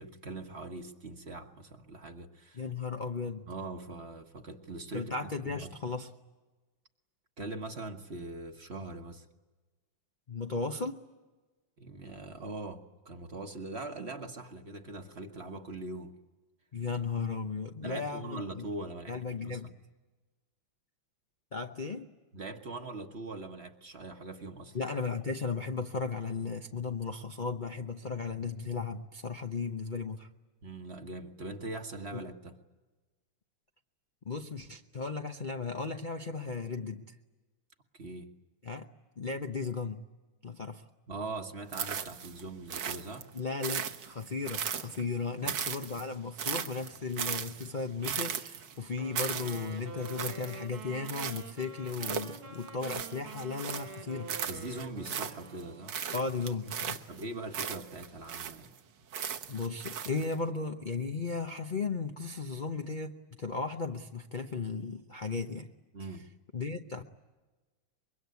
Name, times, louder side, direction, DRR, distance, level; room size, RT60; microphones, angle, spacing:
voice 1, 0.0-2.6 3.5-5.1 5.4-5.7 7.4-9.2 11.8-16.2 17.8-19.7 22.3-24.8 30.6-32.6 37.9-38.3 41.1-43.3 45.4-45.6 54.5-56.0 57.1-58.7 65.9-66.2, right 2 dB, 35° right, 6 dB, 1.3 m, -42 dB
voice 2, 2.5-3.5 4.9-6.1 10.3-11.0 16.7-18.7 19.1-19.7 21.5-22.1 24.7-30.3 32.1-32.2 34.2-37.1 38.6-38.9 39.2-40.0 40.4-40.9 43.3-54.3 56.1-57.0 59.5-65.7 66.5-67.0, left 4 dB, 65° left, 5 dB, 0.4 m, -35 dB
sound 1, 41.7-42.4 42.7-45.1 45.5-54.0 54.3-55.6 55.9-58.7 59.1-60.3, right 8 dB, 60° right, 1.7 m, -37 dB
Wind instrument woodwind instrument, 48.9-56.2, right 5 dB, 90° right, 2.8 m, -47 dB
24.5 x 22.5 x 9.5 m, 1.2 s
omnidirectional pair, 2.3 m